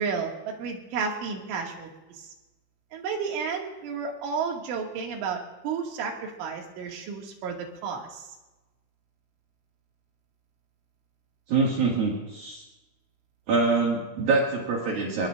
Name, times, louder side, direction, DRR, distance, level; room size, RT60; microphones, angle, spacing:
voice 1, 0.0-2.3 2.9-8.3, right 5 dB, 85° right, 0 dB, 4.6 m, -32 dB
voice 2, 11.5-12.6 13.5-15.3, right 4 dB, 60° right, -3 dB, 3.4 m, -25 dB
29.5 x 18.5 x 2.5 m, 1.1 s
omnidirectional pair, 5.4 m